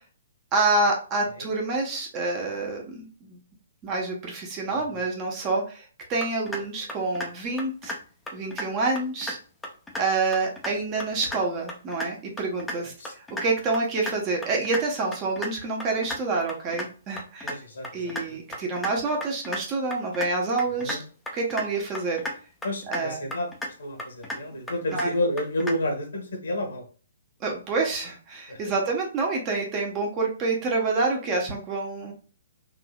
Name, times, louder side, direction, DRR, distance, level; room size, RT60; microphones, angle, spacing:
voice 1, 0.5-3.4 3.8-5.8 6.1-7.9 8.3-9.4 10.0-17.6 17.9-21.0 21.3-22.2 22.9-23.3 24.9-25.1 27.4-32.1, right 3 dB, 30° right, 0 dB, 1.0 m, -27 dB
sound 1, 6.2-6.6 6.9-7.3 7.6-8.0 8.3-8.7 9.0-9.3 9.6-10.0 10.3-10.7 11.0-11.4 11.7-12.1 12.4-12.8 13.1-13.4 13.7-14.1 14.4-14.8 15.1-15.5 15.8-16.2 16.5-16.9 17.2-17.5 17.8-18.2 18.5-18.9 19.2-19.6 19.9-20.3 20.6-21.0 21.3-21.7 21.9-22.4 22.6-23.0 23.3-23.7 24.0-24.4 24.7-25.1 25.4-25.7, left 1 dB, 5° left, 0.7 m, -33 dB
voice 2, 12.8-13.1 17.4-18.4 20.8-21.0 22.6-23.5 23.8-26.8 28.5-28.7, left 1 dB, 70° left, 2 dB, 1.3 m, -31 dB
3.7 x 2.7 x 2.3 m, 0.37 s
figure-of-eight pair, 125°, 0 cm